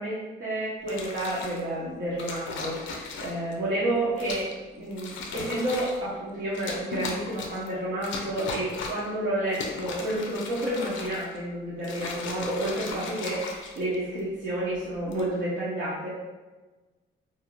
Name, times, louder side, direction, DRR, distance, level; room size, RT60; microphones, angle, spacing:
voice 1, 0.0-16.1, right 1 dB, 60° right, -8 dB, 0.8 m, -30 dB
sound 1, 0.8-1.6 2.2-3.5 4.2-4.6 4.9-6.0 6.5-7.7 8.0-9.1 9.5-11.4 11.8-14.2 14.9-15.3, left 4 dB, 75° left, 0.5 m, -37 dB
2.5 x 2.3 x 3.0 m, 1.2 s
cardioid pair, 90°, 20 cm